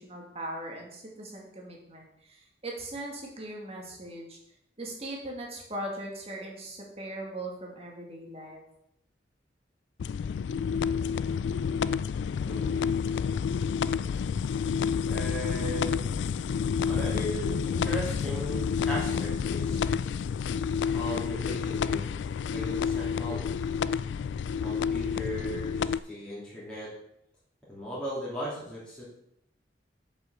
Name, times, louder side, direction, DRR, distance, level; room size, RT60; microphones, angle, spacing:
voice 1, 0.0-4.4 4.8-8.6, right 1 dB, 35° right, -1 dB, 2.3 m, -39 dB
sound 1, 10.0-26.0, left 6 dB, 80° left, 0.3 m, -29 dB
voice 2, 12.4-12.8 15.0-16.0 16.8-19.8 20.9-22.2 22.5-23.5 24.6-26.9 27.7-29.0, equal, 5° left, -8 dB, 3.2 m, -37 dB
7.9 x 6.0 x 6.7 m, 0.77 s
head